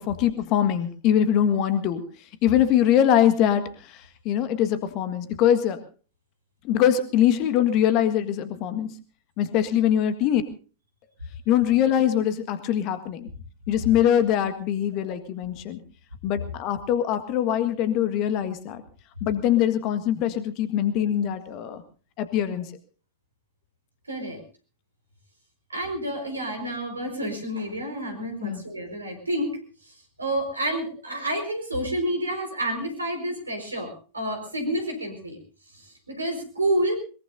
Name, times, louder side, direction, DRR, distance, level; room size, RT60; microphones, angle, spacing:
voice 1, 0.0-2.0 2.4-5.8 6.6-8.9 9.4-10.4 11.5-13.3 13.7-15.8 16.2-18.8 19.2-21.8 22.2-22.7 28.4-28.6, left 10 dB, 40° left, 11 dB, 1.7 m, -23 dB
voice 2, 24.1-24.4 25.7-35.4 35.7-37.0, right 1 dB, 80° right, 4 dB, 4.9 m, -29 dB
22.0 x 22.0 x 2.7 m, 0.37 s
figure-of-eight pair, 90°, 0 cm